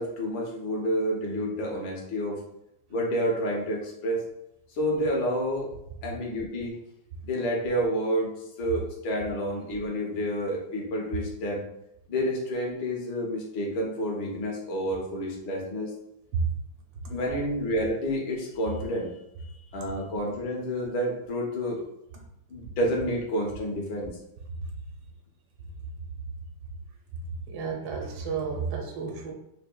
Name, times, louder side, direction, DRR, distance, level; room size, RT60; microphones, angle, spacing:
voice 1, 0.0-2.4 2.9-4.2 4.7-5.7 6.0-6.8 7.2-8.3 8.6-11.6 12.1-15.9 17.1-19.1 19.4-21.8 22.5-24.1, equal, 70° left, -1 dB, 1.5 m, -29 dB
voice 2, 27.5-29.3, right 5 dB, 90° right, 1 dB, 1.6 m, -31 dB
5.1 x 2.6 x 2.2 m, 0.81 s
omnidirectional pair, 2.3 m